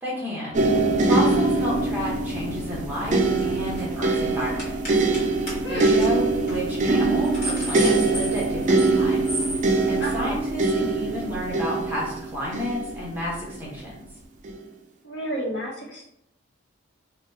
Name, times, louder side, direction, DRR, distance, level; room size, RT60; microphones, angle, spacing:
voice 1, 0.0-5.0 5.7-9.3 9.6-14.0, left 1 dB, 10° right, -6 dB, 1.0 m, -31 dB
sound 1, 0.5-13.6 14.4-14.6, right 3 dB, 35° right, 0.4 m, -23 dB
sound 2, 3.2-3.4 3.7-3.9 4.6-5.2 5.5-5.6 5.9-6.1 6.5-6.6 7.0-8.9 9.2-9.6, equal, 35° left, 1.4 m, -33 dB
voice 2, 5.6-6.0 10.0-10.4 15.0-16.1, equal, 60° left, -4 dB, 1.1 m, -31 dB
4.0 x 2.3 x 3.2 m, 0.76 s
head